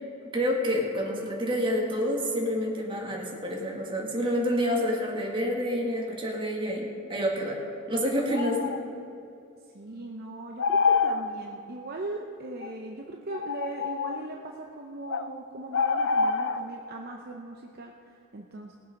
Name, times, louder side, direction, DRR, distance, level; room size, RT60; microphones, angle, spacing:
voice 1, 0.3-7.6 7.9-8.8, equal, 25° right, -2 dB, 2.0 m, -28 dB
sound 1, 8.2-8.8 10.6-11.2 12.6-12.7 13.3-14.2 15.1-15.3 15.7-16.6, left 5 dB, 60° left, 0.5 m, -26 dB
voice 2, 9.6-18.8, right 2 dB, 45° right, 0 dB, 0.8 m, -39 dB
19.5 x 7.5 x 5.3 m, 2.6 s
head